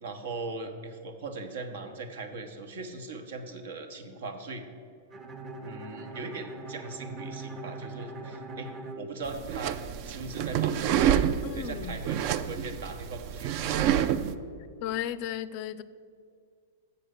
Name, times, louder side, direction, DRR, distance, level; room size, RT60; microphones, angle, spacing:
voice 1, 0.0-4.6 5.6-13.9, right 3 dB, 75° right, 6 dB, 1.0 m, -40 dB
Bowed string instrument, 5.1-9.9, right 2 dB, 30° right, 0.8 m, -41 dB
sound 1, 9.3-14.3, right 9 dB, 50° right, 0.4 m, -28 dB
voice 2, 11.4-12.0 14.8-15.8, left 11 dB, 50° left, 15 dB, 0.4 m, -34 dB
6.8 x 6.3 x 6.6 m, 2.2 s
hypercardioid pair, 120°, 0 cm